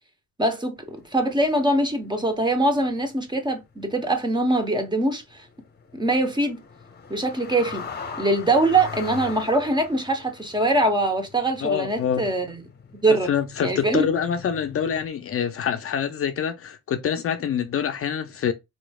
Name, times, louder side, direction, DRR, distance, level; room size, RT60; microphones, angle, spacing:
voice 1, 0.4-5.5 5.9-6.6 7.1-7.9 8.2-12.5 13.0-13.3 13.6-14.1, right 2 dB, 15° right, 0.9 m, -23 dB
sound 1, 0.8-1.8 2.0-15.1, left 5 dB, 35° left, 0.9 m, -41 dB
voice 2, 11.6-12.3 13.1-18.5, left 8 dB, 50° left, 0.5 m, -26 dB
4.3 x 3.1 x 2.3 m
cardioid pair, 90°, 30 cm